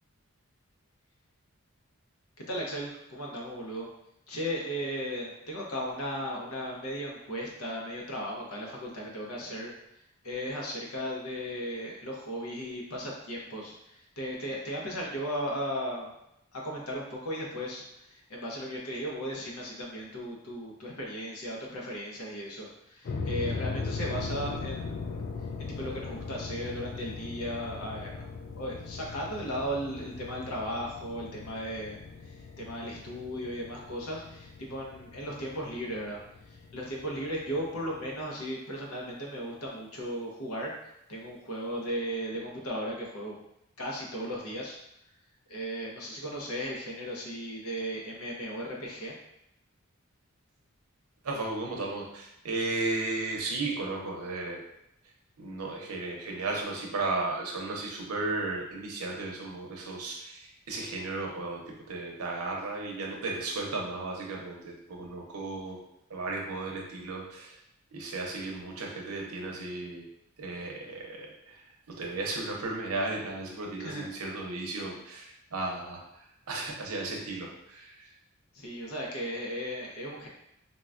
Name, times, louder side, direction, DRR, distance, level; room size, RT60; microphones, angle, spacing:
voice 1, 2.5-3.9 4.3-9.7 10.2-16.1 16.5-25.2 25.6-28.3 28.6-36.2 36.5-40.7 41.1-43.4 43.8-44.8 45.5-49.1 73.8-74.1 78.5-80.3, equal, 80° left, -2 dB, 0.8 m, -36 dB
sound 1, 23.0-38.3, left 4 dB, 45° left, 0.3 m, -39 dB
voice 2, 51.2-54.6 55.4-65.8 66.1-67.6 67.9-70.1 70.4-76.0 76.5-78.1, right 2 dB, 90° right, -1 dB, 0.7 m, -35 dB
3.8 x 2.2 x 2.4 m, 0.80 s
head